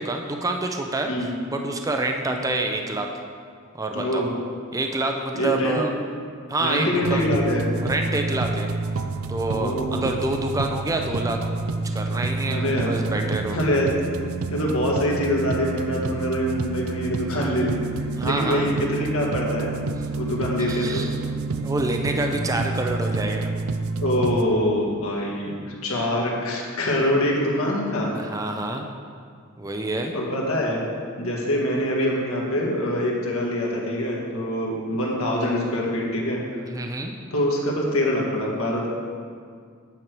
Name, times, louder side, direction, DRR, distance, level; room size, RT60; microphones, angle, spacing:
voice 1, 0.0-3.1 3.7-4.2 4.7-5.9 6.5-7.3 7.8-8.7 9.3-9.7 10.0-11.4 11.9-13.6 18.2-18.7 20.6-21.2 21.6-23.5 28.2-28.9 29.6-30.1 36.7-37.1, right 2 dB, 15° right, 3 dB, 0.5 m, -27 dB
voice 2, 3.9-4.3 5.4-5.8 6.6-7.7 9.5-10.1 12.5-12.9 13.5-13.9 14.5-17.8 18.2-19.7 20.1-21.0 24.0-28.1 30.1-30.8 31.2-36.4 37.3-38.9, left 1 dB, 75° left, -3 dB, 1.7 m, -24 dB
sound 1, 7.0-24.4, right 3 dB, 75° right, 0.5 m, -29 dB
8.9 x 6.4 x 4.5 m, 2.1 s
head